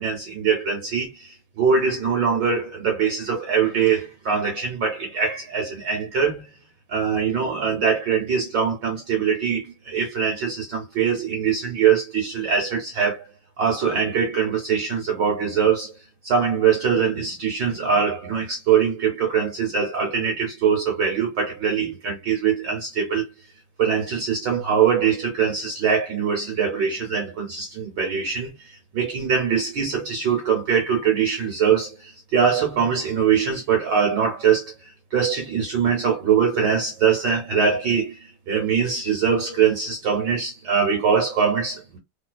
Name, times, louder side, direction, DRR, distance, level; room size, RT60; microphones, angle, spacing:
voice 1, 0.0-6.5 6.9-13.3 13.6-16.0 16.2-23.2 23.8-42.0, right 6 dB, 65° right, 1.3 m, -22 dB
3.2 x 2.8 x 2.2 m
omnidirectional pair, 2.4 m